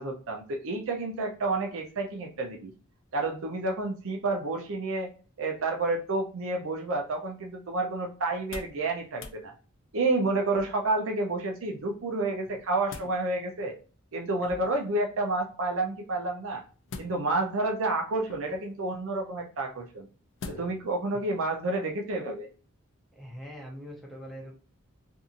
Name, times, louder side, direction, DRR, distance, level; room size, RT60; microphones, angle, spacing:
voice 1, 0.0-2.7 3.1-5.1 5.4-9.5 9.9-13.7 14.1-16.6 17.0-20.1 20.5-22.5, right 2 dB, 65° right, 2 dB, 0.6 m, -30 dB
opening and shutting a fridge door, 8.3-8.8 9.1-9.4 10.5-11.0 12.4-13.2 14.4-14.9 16.9-17.5 18.3-18.7 20.4-20.9 21.3-21.4, left 3 dB, 60° left, 0.4 m, -43 dB
voice 2, 23.1-24.5, equal, ahead, -2 dB, 0.7 m, -42 dB
2.6 x 2.6 x 2.5 m, 0.38 s
head